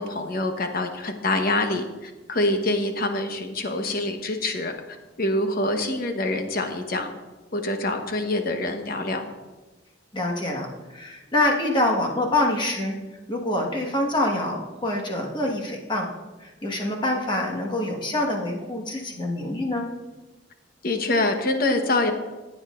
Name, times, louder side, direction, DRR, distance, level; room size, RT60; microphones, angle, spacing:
voice 1, 0.0-4.7 5.2-7.1 7.5-9.2 20.8-22.1, left 2 dB, 55° left, 5 dB, 1.1 m, -25 dB
voice 2, 10.1-13.0 13.3-16.1 16.4-19.9, left 1 dB, 25° left, 0 dB, 1.5 m, -25 dB
15.5 x 8.9 x 2.5 m, 1.2 s
head